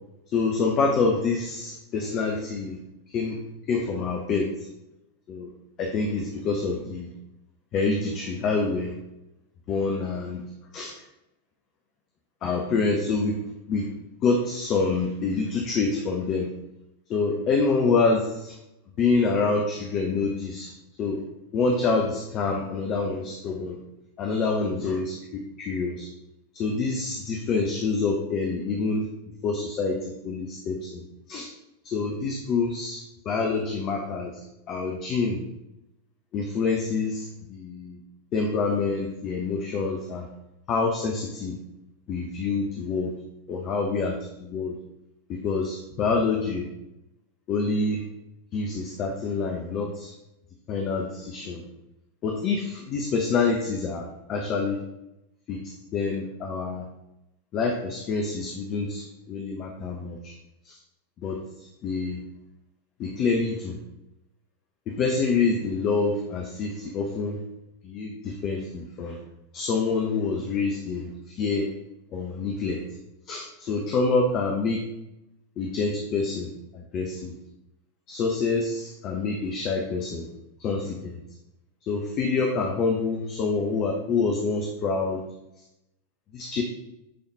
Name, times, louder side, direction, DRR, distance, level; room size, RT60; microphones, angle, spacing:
voice 1, 0.3-2.8 3.1-3.4 3.7-4.7 5.3-5.5 5.8-7.1 7.7-9.0 9.7-10.4 10.7-11.0 12.4-13.4 13.7-13.9 14.2-16.5 17.1-18.6 19.0-20.7 21.0-21.2 21.5-23.8 24.2-26.1 26.5-29.1 29.4-31.5 31.8-35.4 36.3-38.0 38.3-40.3 40.7-41.6 42.1-43.1 43.5-44.8 45.3-46.7 47.5-48.0 48.5-50.1 50.7-51.6 52.2-54.8 55.5-56.9 57.5-60.3 60.6-60.8 61.2-62.2 63.0-63.8 64.9-67.4 67.8-69.2 69.5-71.7 72.1-72.8 73.3-74.9 75.6-77.3 78.1-80.3 80.6-81.2 81.8-85.2 86.3-86.6, left 4 dB, 35° left, 3 dB, 0.9 m, -27 dB
8.8 x 4.2 x 3.9 m, 0.89 s
figure-of-eight pair, 90°, 0 cm